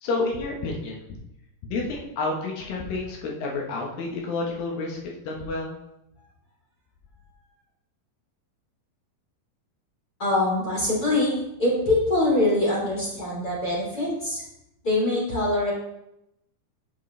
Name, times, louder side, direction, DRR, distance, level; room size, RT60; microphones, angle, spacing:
voice 1, 0.0-1.0 1.7-5.0 5.3-5.7, left 3 dB, 65° left, -1 dB, 2.4 m, -29 dB
voice 2, 10.2-11.3 11.6-14.4 14.8-15.7, left 2 dB, 20° left, -6 dB, 3.4 m, -23 dB
9.4 x 8.0 x 3.3 m, 0.85 s
omnidirectional pair, 5.6 m